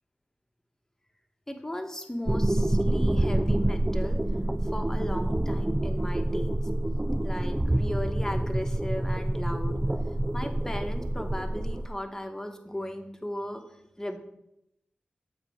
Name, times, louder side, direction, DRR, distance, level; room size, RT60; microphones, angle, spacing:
voice 1, 1.5-4.2 4.7-6.7 7.2-9.8 10.3-13.6 14.0-14.2, left 1 dB, 15° left, 5 dB, 1.2 m, -36 dB
sound 1, 2.3-11.9, right 1 dB, 15° right, 0.3 m, -27 dB
7.4 x 4.1 x 6.4 m, 0.82 s
cardioid pair, 60°, 3 cm